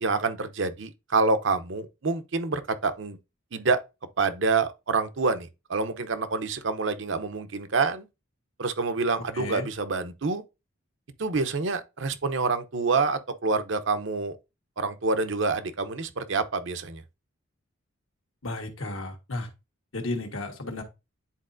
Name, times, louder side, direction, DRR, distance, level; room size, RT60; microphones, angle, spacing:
voice 1, 0.0-3.2 3.5-3.8 4.2-8.1 8.6-10.4 11.2-14.4 14.8-17.0, right 4 dB, 65° right, 0.7 m, -27 dB
voice 2, 9.3-9.7 18.4-19.5 19.9-20.8, left 2 dB, 75° left, 1.4 m, -33 dB
10.0 x 4.1 x 2.6 m
head